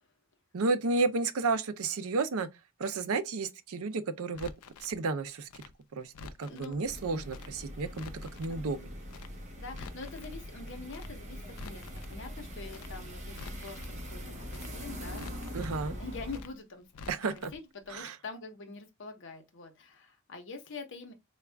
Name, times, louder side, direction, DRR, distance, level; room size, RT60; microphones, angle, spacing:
voice 1, 0.5-2.5 2.8-4.5 4.8-5.6 5.9-6.1 6.4-8.9 15.5-15.9 17.1-17.5 17.9-18.2, right 3 dB, 75° right, 0.5 m, -32 dB
Crackle, 4.3-5.0 5.5-6.8 7.3-7.5 7.8-8.6 9.1-9.3 9.6-10.4 10.9-11.1 11.4-12.2 12.7-12.9 13.2-14.0 14.5-14.7 15.0-15.8 16.3-16.5 16.8-17.6 17.8-17.9, left 4 dB, 90° left, 0.4 m, -48 dB
voice 2, 6.5-6.8 7.8-7.9 8.5-9.0 9.6-13.8 14.1-16.9 17.5-17.6 17.9-21.1, left 3 dB, 60° left, 0.8 m, -45 dB
sound 1, 6.8-16.4, equal, 35° right, 1.0 m, -42 dB
3.5 x 2.3 x 3.3 m
head